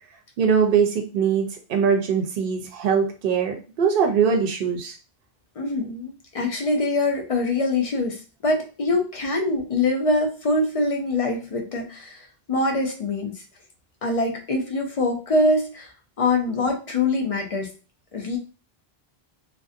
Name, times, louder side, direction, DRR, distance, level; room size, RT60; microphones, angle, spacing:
voice 1, 0.4-4.9, right 6 dB, 65° right, 3 dB, 0.7 m, -22 dB
voice 2, 5.6-13.4 14.0-15.9 16.2-17.7 18.1-18.4, left 2 dB, 50° left, 2 dB, 0.4 m, -24 dB
2.5 x 2.1 x 2.4 m, 0.34 s
omnidirectional pair, 1.1 m